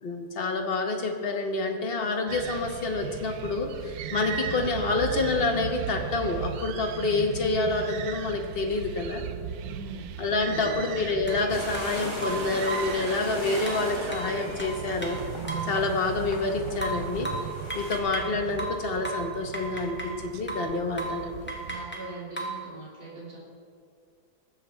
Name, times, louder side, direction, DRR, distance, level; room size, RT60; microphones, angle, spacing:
voice 1, 0.0-9.2 10.2-15.2 15.7-17.3 17.7-21.4, left 3 dB, 40° left, 3 dB, 1.3 m, -28 dB
sound 1, 2.3-21.8, right 9 dB, 80° right, 1.1 m, -38 dB
voice 2, 10.5-10.8 21.6-23.4, right 3 dB, 55° right, -7 dB, 3.5 m, -41 dB
sound 2, 11.3-11.4 11.7-11.9 12.2-13.0 13.7-15.8 16.8-18.3 18.6-20.2 20.5-20.7 21.0-21.2 21.5-22.6, right 2 dB, 5° left, 1.7 m, -35 dB
sound 3, 11.5-18.0, equal, 20° right, 1.4 m, -38 dB
20.0 x 7.7 x 4.4 m, 2.3 s
omnidirectional pair, 1.7 m